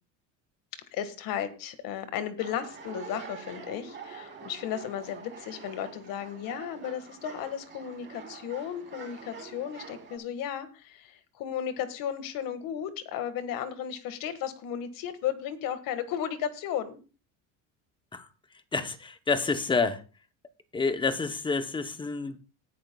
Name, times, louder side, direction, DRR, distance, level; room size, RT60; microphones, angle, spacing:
voice 1, 0.7-17.0, left 9 dB, 65° left, 1.7 m, -34 dB
sound 1, 2.4-10.2, right 5 dB, 30° right, 3.4 m, -46 dB
voice 2, 18.7-20.0 20.7-22.4, left 4 dB, 15° left, 0.8 m, -28 dB
18.5 x 10.5 x 2.3 m
cardioid pair, 160°, 36 cm